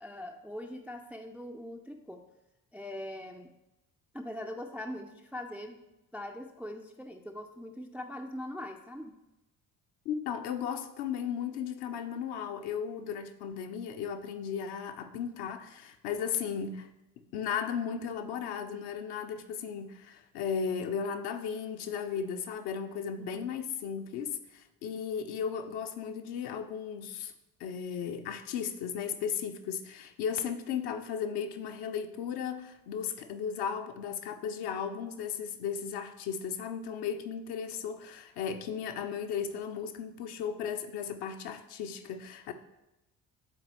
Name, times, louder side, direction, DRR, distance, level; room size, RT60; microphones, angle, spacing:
voice 1, 0.0-2.2 2.7-3.5 4.1-5.8 6.1-9.1 23.2-23.4, left 1 dB, 5° right, 4 dB, 0.4 m, -42 dB
voice 2, 10.0-16.9 17.3-27.3 27.6-42.5, left 7 dB, 55° left, 7 dB, 0.7 m, -35 dB
9.8 x 4.0 x 3.0 m, 0.95 s
figure-of-eight pair, 45°, 47 cm